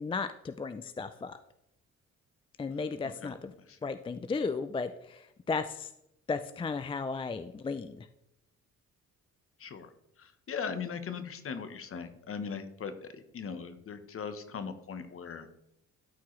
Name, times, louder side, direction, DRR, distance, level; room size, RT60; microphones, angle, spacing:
voice 1, 0.0-1.4 2.6-3.5 3.8-5.9 6.3-8.1, left 4 dB, 20° left, 10 dB, 0.3 m, -35 dB
voice 2, 9.6-9.9 10.2-15.5, left 6 dB, 45° left, 9 dB, 1.0 m, -39 dB
12.5 x 4.6 x 3.2 m, 0.82 s
cardioid pair, 90°, 30 cm